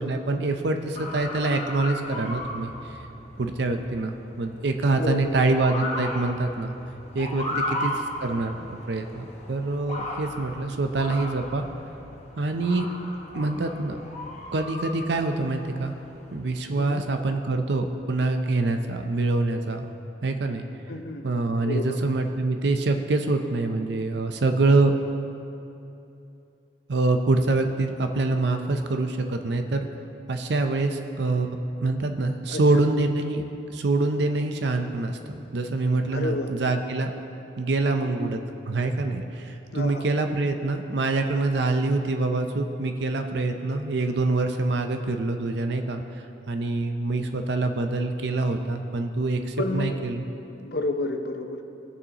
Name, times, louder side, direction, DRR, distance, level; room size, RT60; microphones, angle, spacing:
voice 1, 0.0-2.7 3.4-6.7 7.1-7.9 8.2-11.6 12.4-12.9 13.3-14.0 14.5-15.9 16.3-19.9 20.2-20.6 21.2-24.9 26.9-29.8 30.3-33.4 33.7-37.1 37.6-38.4 38.7-46.0 46.5-50.2, right 2 dB, 60° right, 5 dB, 0.5 m, -25 dB
Motor vehicle (road) / Siren, 0.9-16.5, left 1 dB, 35° left, 1.0 m, -36 dB
voice 2, 4.9-5.3 7.5-7.8 16.7-17.0 20.9-21.3 21.6-22.0 32.5-32.9 36.1-36.5 38.0-38.3 39.7-40.0 49.6-50.0 50.5-51.6, left 2 dB, 55° left, 5 dB, 0.7 m, -31 dB
17.5 x 6.8 x 2.9 m, 2.8 s
head